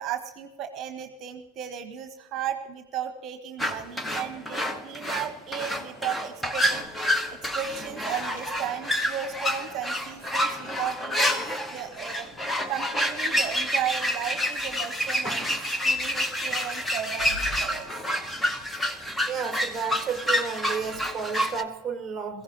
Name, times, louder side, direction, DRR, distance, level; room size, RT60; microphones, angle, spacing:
voice 1, 0.0-6.9 7.3-12.3 12.7-15.6 15.8-17.9, right 9 dB, 35° right, 1.2 m, -35 dB
sound 1, 3.6-21.6, equal, 5° left, 0.9 m, -28 dB
sound 2, 6.4-21.4, left 2 dB, 60° left, 5.2 m, -50 dB
voice 2, 19.3-22.4, right 6 dB, 15° right, 1.3 m, -32 dB
21.5 x 15.5 x 2.9 m
figure-of-eight pair, 90°, 0 cm